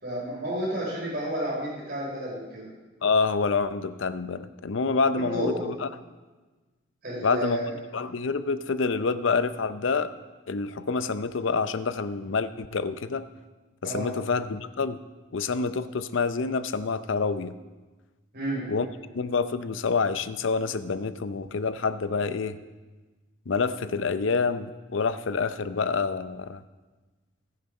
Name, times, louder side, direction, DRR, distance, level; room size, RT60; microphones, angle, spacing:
voice 1, 0.0-2.7 5.1-5.7 7.0-7.6 13.8-14.1 18.3-18.7, right 1 dB, 50° right, -6 dB, 4.6 m, -31 dB
voice 2, 3.0-5.9 7.2-7.6 7.9-10.1 10.5-13.3 13.8-15.0 15.3-17.5 18.7-18.9 19.1-22.6 23.5-26.6, left 4 dB, 70° left, 13 dB, 0.6 m, -27 dB
19.0 x 6.8 x 5.4 m, 1.3 s
head